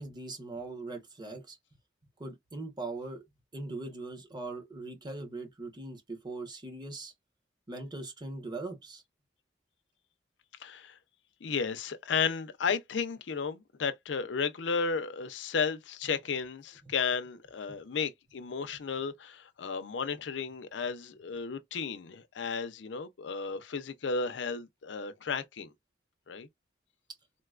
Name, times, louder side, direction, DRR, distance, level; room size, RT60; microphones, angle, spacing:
voice 1, 0.0-1.6 2.2-3.2 3.5-7.1 7.7-9.0 16.9-17.0, right 2 dB, 25° right, 1.0 m, -40 dB
voice 2, 10.6-11.0 11.4-25.7 26.3-26.5, left 5 dB, 90° left, 0.5 m, -33 dB
3.8 x 2.2 x 2.4 m
head